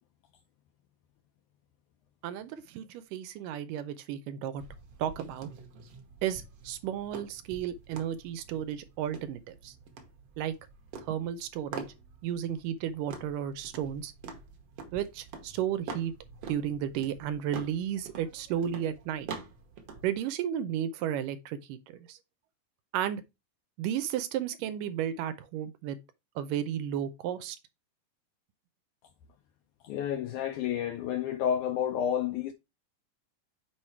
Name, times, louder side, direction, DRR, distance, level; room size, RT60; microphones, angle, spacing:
voice 1, 2.2-4.6 5.0-5.5 6.2-9.7 10.4-10.6 11.0-11.9 12.2-14.1 14.9-16.1 16.5-19.3 20.0-22.2 22.9-23.2 23.8-26.0 26.4-27.6, right 10 dB, 80° right, 2.1 m, -33 dB
sound 1, 4.6-20.2, right 5 dB, 60° right, 1.6 m, -46 dB
voice 2, 29.8-32.5, left 9 dB, 80° left, 1.7 m, -30 dB
6.3 x 4.7 x 4.3 m
omnidirectional pair, 4.1 m